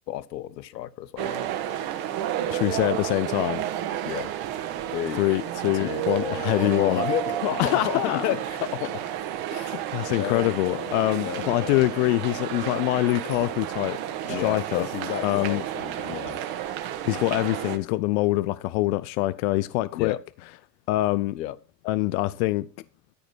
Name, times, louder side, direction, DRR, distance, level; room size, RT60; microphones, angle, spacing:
voice 1, 0.1-1.5 4.0-4.3 4.9-5.2 5.8-9.0 9.5-9.9 10.2-11.9 14.3-16.4 19.9-20.2 21.3-21.6, left 13 dB, 80° left, 1.0 m, -32 dB
sound 1, 1.2-17.8, right 11 dB, 45° right, 1.9 m, -31 dB
voice 2, 2.5-3.6 5.2-7.0 7.6-8.3 9.9-14.0 14.3-14.9 15.2-15.6 16.1-16.2 17.0-20.2 20.9-21.4 21.9-22.7, left 18 dB, 60° left, 0.7 m, -24 dB
13.5 x 5.1 x 6.3 m
hypercardioid pair, 105°, 49 cm